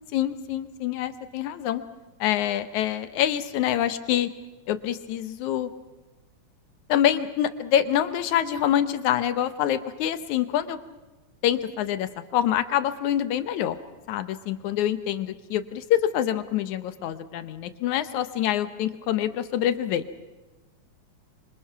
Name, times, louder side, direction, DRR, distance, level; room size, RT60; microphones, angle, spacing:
voice 1, 0.1-1.8 2.2-4.3 4.7-5.7 6.9-10.8 11.4-13.8 14.1-20.2, left 11 dB, 85° left, 12 dB, 2.4 m, -26 dB
26.5 x 25.0 x 5.9 m, 1.1 s
omnidirectional pair, 3.3 m